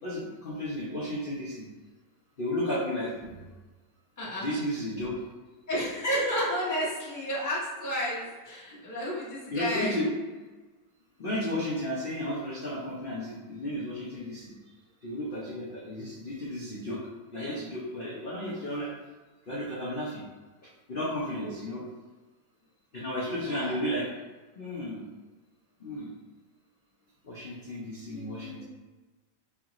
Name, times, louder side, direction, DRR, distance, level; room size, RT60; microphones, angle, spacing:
voice 1, 0.0-1.7 2.4-3.4 4.4-5.2 9.5-10.1 11.2-14.5 15.0-17.0 17.3-18.9 19.5-20.2 20.9-21.8 22.9-24.1 24.6-25.0 25.8-26.1 27.2-28.6, left 1 dB, 70° left, -7 dB, 0.5 m, -33 dB
voice 2, 4.2-4.5 5.7-9.9 11.2-11.3 21.4-21.5 23.2-23.9 28.1-28.6, equal, 15° left, -7 dB, 0.8 m, -32 dB
4.6 x 2.9 x 2.4 m, 1.2 s
omnidirectional pair, 1.9 m